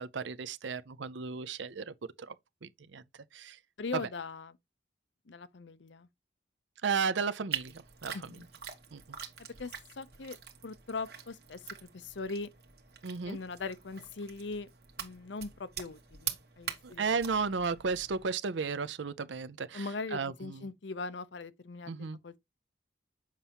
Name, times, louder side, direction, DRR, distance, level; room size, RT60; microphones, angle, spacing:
voice 1, 0.0-2.3 2.6-3.0 3.3-3.6 3.9-4.0 6.8-8.4 8.9-9.0 13.0-13.4 16.8-20.7 21.9-22.2, right 5 dB, 80° right, 0.6 m, -34 dB
voice 2, 3.8-4.6 5.3-6.1 8.1-8.4 9.6-10.4 10.6-12.5 13.3-14.7 15.0-17.2 19.7-21.9 22.2-22.4, left 3 dB, 80° left, 0.7 m, -40 dB
sound 1, 7.5-18.3, right 8 dB, 55° right, 1.3 m, -44 dB
7.4 x 5.5 x 2.9 m
head